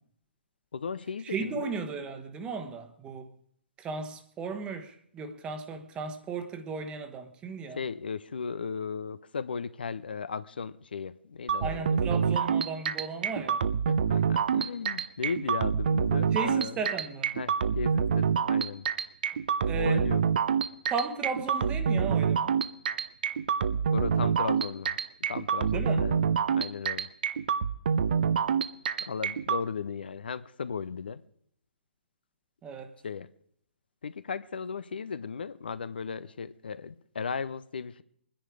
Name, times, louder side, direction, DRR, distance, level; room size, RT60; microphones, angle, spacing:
voice 1, 0.7-1.7 7.8-12.3 13.9-16.7 17.3-18.9 19.7-20.2 23.8-25.0 25.3-27.1 29.0-31.2 33.0-33.3 34.0-38.0, left 5 dB, 65° left, 0.7 m, -36 dB
voice 2, 1.2-3.3 3.8-7.8 11.6-13.7 16.2-17.3 19.7-20.1 20.9-22.6 25.7-26.1 32.6-32.9, right 5 dB, 15° right, 1.2 m, -35 dB
sound 1, 11.5-29.6, right 7 dB, 55° right, 0.8 m, -27 dB
21.5 x 10.0 x 4.9 m
figure-of-eight pair, 125°, 6 cm